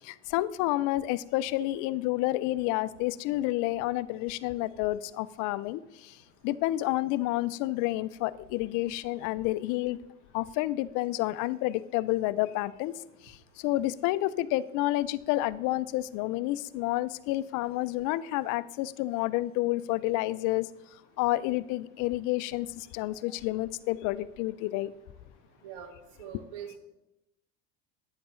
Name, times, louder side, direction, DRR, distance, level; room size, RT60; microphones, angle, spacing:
voice 1, 0.0-5.8 6.4-10.0 10.3-12.9 13.6-20.7 21.2-24.9, left 17 dB, 55° left, 0.5 m, -29 dB
voice 2, 25.6-25.9 26.2-26.8, right 9 dB, 70° right, 1.5 m, -42 dB
9.6 x 7.9 x 3.2 m
hypercardioid pair, 80°, 37 cm